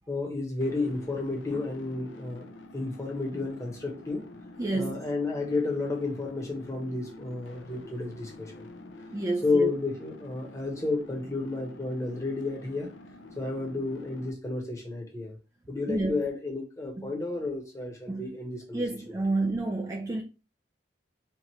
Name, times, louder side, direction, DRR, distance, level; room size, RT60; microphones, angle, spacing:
voice 1, 0.1-2.5 2.7-4.3 4.7-8.7 9.4-12.9 13.4-15.4 15.7-18.8, left 3 dB, 15° left, 0.9 m, -31 dB
sound 1, 0.6-14.3, left 2 dB, 75° left, 0.5 m, -48 dB
voice 2, 4.6-5.0 9.1-9.7 15.9-16.2 17.0-17.1 18.1-18.3 18.7-20.2, right 2 dB, 15° right, 0.3 m, -29 dB
4.4 x 2.4 x 3.1 m
head